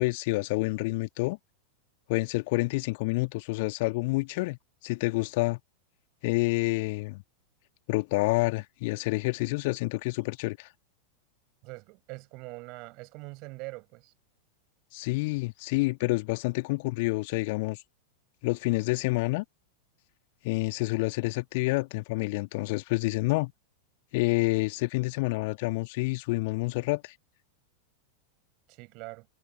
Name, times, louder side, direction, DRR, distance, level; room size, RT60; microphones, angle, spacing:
voice 1, 0.0-1.4 2.1-4.6 4.8-5.6 6.2-7.2 7.9-10.7 14.9-17.8 18.4-19.4 20.4-23.5 24.1-27.1, left 24 dB, 50° left, 1.9 m, -28 dB
voice 2, 11.6-14.1 28.7-29.3, right 26 dB, 40° right, 7.6 m, -43 dB
figure-of-eight pair, 90°, 0 cm